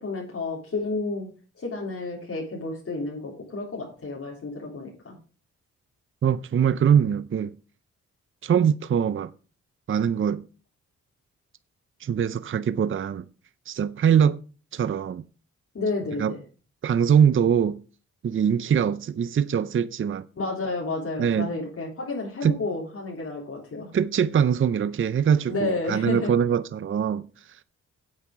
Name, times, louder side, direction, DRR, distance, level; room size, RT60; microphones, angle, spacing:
voice 1, 0.0-1.3 1.5-5.2 15.7-16.4 20.4-23.9 25.5-26.3, left 3 dB, 50° left, 3.4 m, -31 dB
voice 2, 6.2-7.6 8.4-9.3 9.9-10.5 12.0-13.3 13.7-14.4 14.7-15.2 16.2-16.3 16.8-17.8 18.2-20.3 21.2-21.5 22.4-22.6 23.9-27.6, right 8 dB, 45° right, 0.6 m, -23 dB
9.7 x 8.3 x 4.9 m
cardioid pair, 90°, 30 cm